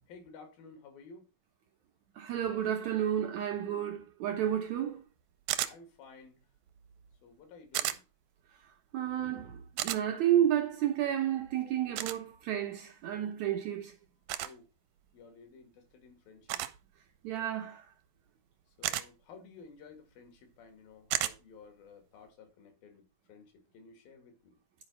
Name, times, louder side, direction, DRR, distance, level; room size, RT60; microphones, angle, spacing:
voice 1, 0.1-1.3 5.6-6.5 7.2-8.0 14.4-14.7 15.1-16.6 18.8-24.6, left 4 dB, 80° left, 4.0 m, -54 dB
voice 2, 2.2-5.0 8.6-14.0 17.2-17.9, right 10 dB, 70° right, 1.8 m, -31 dB
sound 1, 5.5-5.7 7.7-8.0 9.8-10.0 12.0-12.2 14.3-14.5 16.5-16.8 18.8-19.1 21.1-21.4, right 14 dB, 90° right, 2.5 m, -32 dB
10.5 x 5.1 x 5.5 m
omnidirectional pair, 4.2 m